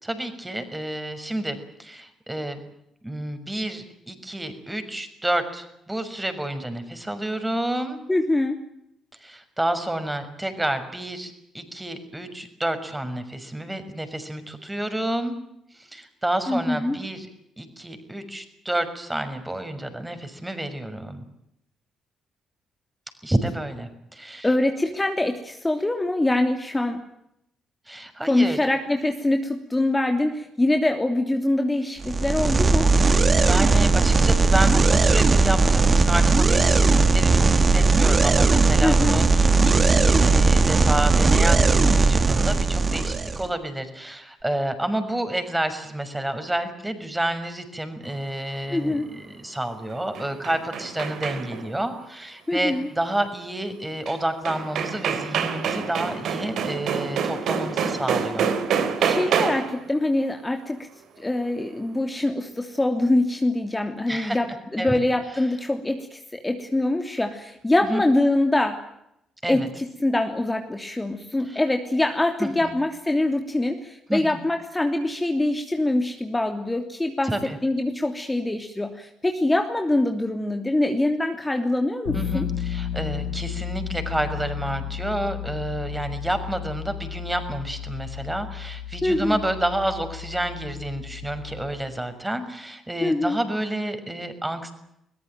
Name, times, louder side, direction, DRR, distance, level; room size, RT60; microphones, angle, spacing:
voice 1, 0.0-2.6 3.0-8.0 9.2-15.3 15.7-17.3 17.6-21.2 23.2-24.5 27.9-28.6 33.0-58.5 64.1-64.4 64.8-65.0 67.8-68.0 69.4-69.7 71.5-71.6 72.4-72.7 74.1-74.4 77.2-77.6 82.1-94.7, right 1 dB, 10° right, 9 dB, 6.1 m, -29 dB
voice 2, 8.1-8.6 16.5-17.0 24.4-27.0 28.2-32.9 38.8-39.2 48.7-49.1 52.5-52.9 59.0-60.9 61.2-64.5 64.7-68.8 69.5-82.5 89.0-89.4 93.0-93.4, left 2 dB, 15° left, 5 dB, 3.0 m, -24 dB
sound 1, 32.0-43.5, right 3 dB, 35° right, 2.9 m, -18 dB
sound 2, 49.9-51.7 54.1-54.2 54.4-59.8, right 7 dB, 60° right, 3.3 m, -26 dB
Bass guitar, 82.0-91.9, left 9 dB, 75° left, 3.5 m, -33 dB
22.5 x 21.5 x 9.3 m, 0.81 s
figure-of-eight pair, 45°, 0 cm